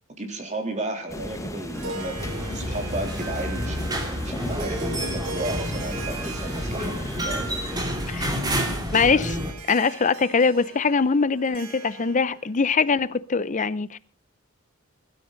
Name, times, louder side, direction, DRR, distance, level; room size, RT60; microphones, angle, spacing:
voice 1, 0.2-7.6 8.2-8.3, right 1 dB, 35° right, 3.4 m, -33 dB
sound 1, 1.1-7.9, left 1 dB, 15° left, 1.4 m, -37 dB
Harp, 1.6-12.5, right 3 dB, 80° right, 1.9 m, -40 dB
sound 2, 2.2-9.5, equal, 20° right, 2.8 m, -29 dB
voice 2, 8.9-9.4 9.7-14.0, left 5 dB, 35° left, 0.6 m, -22 dB
21.5 x 12.5 x 4.0 m
head